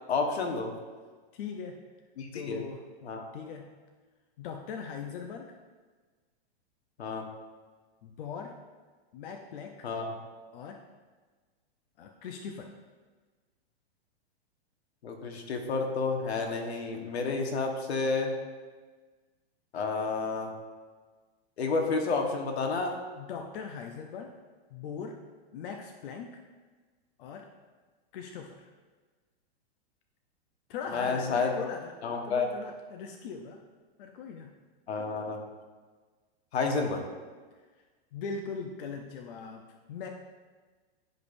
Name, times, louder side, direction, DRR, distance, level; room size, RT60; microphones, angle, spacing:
voice 1, 0.1-0.7 2.2-2.7 3.0-3.3 7.0-7.3 9.8-10.1 15.0-18.3 19.7-20.5 21.6-23.0 30.9-31.5 32.0-32.5 34.9-35.4 36.5-37.1, left 4 dB, 85° left, 3 dB, 1.4 m, -30 dB
voice 2, 1.3-1.8 2.3-2.8 3.3-3.7 4.4-5.6 8.0-8.6 9.1-9.9 10.5-10.8 12.0-12.7 23.1-24.3 24.7-25.2 25.5-26.4 27.2-27.5 28.1-28.7 30.7-31.9 32.2-33.6 34.0-34.5 38.1-40.1, left 6 dB, 60° left, 3 dB, 0.7 m, -40 dB
10.5 x 5.3 x 2.6 m, 1.4 s
hypercardioid pair, 140°, 31 cm